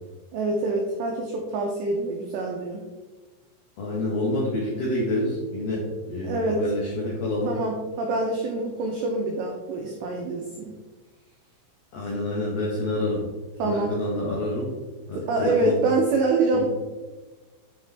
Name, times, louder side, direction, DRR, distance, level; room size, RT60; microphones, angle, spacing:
voice 1, 0.3-2.8 6.2-6.6 7.5-10.7 13.6-14.0 15.1-16.7, right 3 dB, 90° right, 1 dB, 2.4 m, -25 dB
voice 2, 3.8-7.5 11.9-13.3 13.6-14.7 15.1-15.8 16.5-16.7, left 1 dB, 80° left, -4 dB, 2.0 m, -27 dB
9.4 x 3.8 x 3.4 m, 1.3 s
omnidirectional pair, 6.0 m